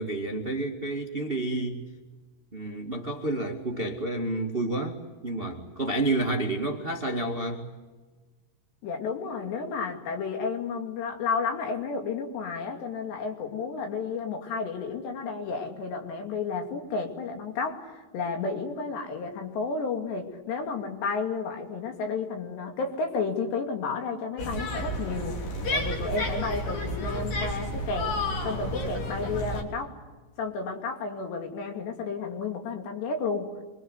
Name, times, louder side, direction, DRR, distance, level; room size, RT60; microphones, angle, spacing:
voice 1, 0.0-1.8 2.5-7.6, right 2 dB, 40° right, 2 dB, 0.7 m, -30 dB
voice 2, 8.8-28.2 28.4-29.9 30.4-33.5, left 4 dB, 70° left, 4 dB, 4.8 m, -32 dB
sound 1, 24.4-29.6, left 1 dB, 50° left, 4.8 m, -31 dB
26.5 x 24.0 x 8.0 m, 1.3 s
omnidirectional pair, 5.2 m